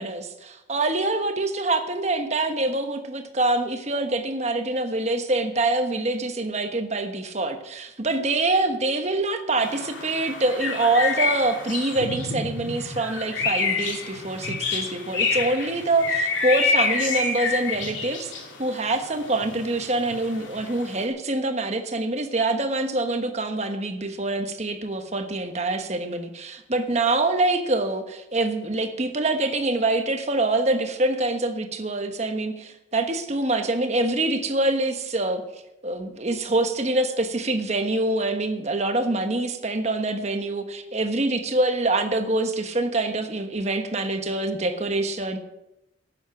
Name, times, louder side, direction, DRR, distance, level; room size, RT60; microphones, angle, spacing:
voice 1, 0.0-35.4 35.8-45.4, right 2 dB, 35° right, 7 dB, 1.3 m, -25 dB
sound 1, 9.6-21.0, left 4 dB, 75° left, 2.8 m, -28 dB
12.0 x 8.9 x 7.5 m, 0.90 s
head